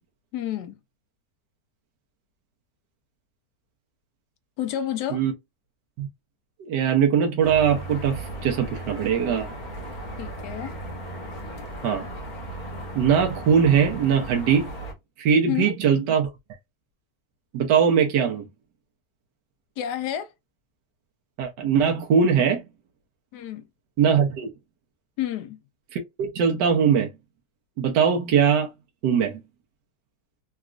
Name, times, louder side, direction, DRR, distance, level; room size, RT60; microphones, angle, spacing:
voice 1, 0.3-0.8 4.6-5.2 10.2-10.8 15.5-15.7 19.8-20.3 23.3-23.7 25.2-25.6, left 11 dB, 80° left, 1.2 m, -30 dB
voice 2, 6.7-9.5 11.8-12.1 12.9-14.7 15.2-16.3 17.5-18.5 21.4-22.6 24.0-24.5 25.9-27.1 27.8-28.7 29.0-29.4, right 7 dB, 85° right, 1.4 m, -21 dB
sound 1, 7.4-14.9, right 1 dB, 35° left, 0.9 m, -36 dB
4.0 x 2.3 x 2.4 m
omnidirectional pair, 1.8 m